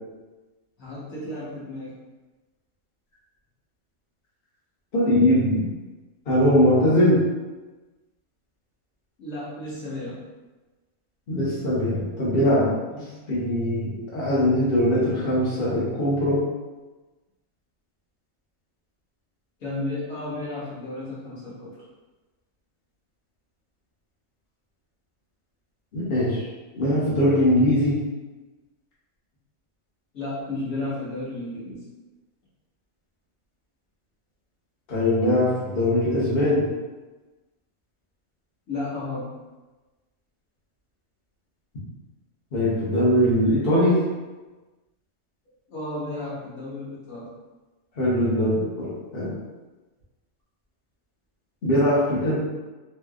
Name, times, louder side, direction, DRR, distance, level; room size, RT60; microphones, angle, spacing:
voice 1, 0.8-2.0 9.2-10.2 12.9-13.2 19.6-21.7 30.1-31.8 38.7-39.3 45.7-47.3, left 2 dB, 75° left, -8 dB, 1.6 m, -33 dB
voice 2, 4.9-5.6 6.3-7.2 11.3-12.7 13.3-16.4 25.9-26.4 26.7-27.9 34.9-36.7 42.5-43.9 48.0-48.9 49.1-49.3 51.6-52.4, left 1 dB, 45° left, -8 dB, 1.1 m, -21 dB
3.3 x 3.2 x 2.4 m, 1.2 s
omnidirectional pair, 1.5 m